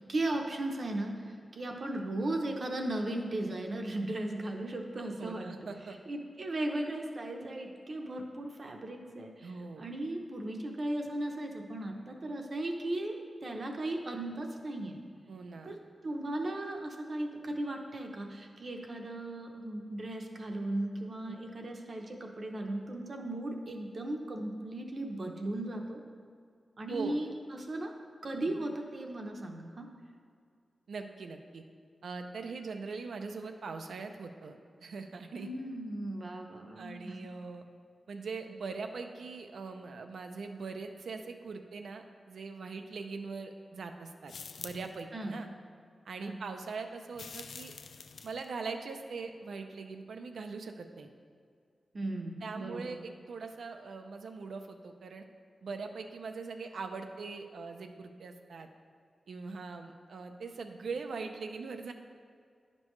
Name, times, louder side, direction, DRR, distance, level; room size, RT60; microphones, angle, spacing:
voice 1, 0.1-1.1 1.5-5.5 6.1-9.5 9.8-13.2 13.4-15.0 15.6-15.8 16.0-26.0 26.8-27.9 28.2-29.9 35.4-37.2 45.1-45.3 46.2-46.4 51.9-53.0, right 1 dB, 45° right, 2 dB, 0.7 m, -36 dB
voice 2, 5.2-6.0 9.4-9.9 15.3-15.7 21.3-21.4 26.9-27.2 28.4-28.5 30.9-31.6 32.0-35.5 36.8-37.6 38.1-45.5 46.1-47.7 48.2-51.1 52.4-55.2 55.6-58.7 59.3-61.9, right 4 dB, 90° right, 6 dB, 0.5 m, -41 dB
sound 1, 44.3-45.0 47.1-48.5, left 5 dB, 80° left, 0.3 m, -46 dB
10.5 x 5.3 x 3.1 m, 2.2 s
wide cardioid pair, 170°, 0 cm